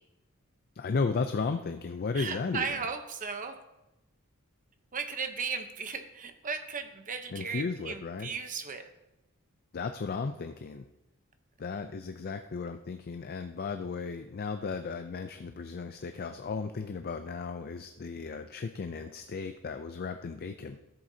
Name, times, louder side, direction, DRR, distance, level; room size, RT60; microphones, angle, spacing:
voice 1, 0.8-2.8 7.3-8.3 9.7-10.9 11.6-20.8, left 4 dB, 45° left, 8 dB, 0.4 m, -35 dB
voice 2, 2.1-3.6 4.9-8.8, right 5 dB, 40° right, 7 dB, 0.8 m, -36 dB
14.0 x 7.7 x 2.8 m, 0.95 s
head